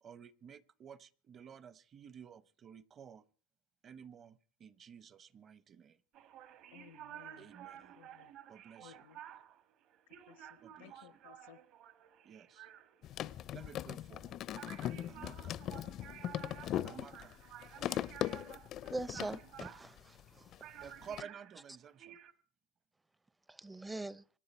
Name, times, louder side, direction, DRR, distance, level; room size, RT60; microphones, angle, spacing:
voice 1, 0.0-3.2 3.8-6.0 7.4-8.0 8.5-9.0 10.6-11.2 12.2-12.7 13.5-14.4 15.1-15.6 16.8-17.3 18.3-18.4 20.8-22.2, right 7 dB, 35° right, 0.9 m, -53 dB
sound 1, 6.1-22.3, right 11 dB, 55° right, 1.5 m, -53 dB
voice 2, 6.7-7.5 8.0-8.3 8.8-9.2 10.3-10.5 10.8-11.6, left 13 dB, 80° left, 0.8 m, -59 dB
sound 2, 13.0-20.6 20.8-21.2, left 12 dB, 45° left, 0.6 m, -40 dB
voice 3, 18.9-20.4 23.5-24.2, right 2 dB, 10° right, 0.6 m, -42 dB
25.5 x 9.7 x 4.4 m
supercardioid pair, 110°, 0 cm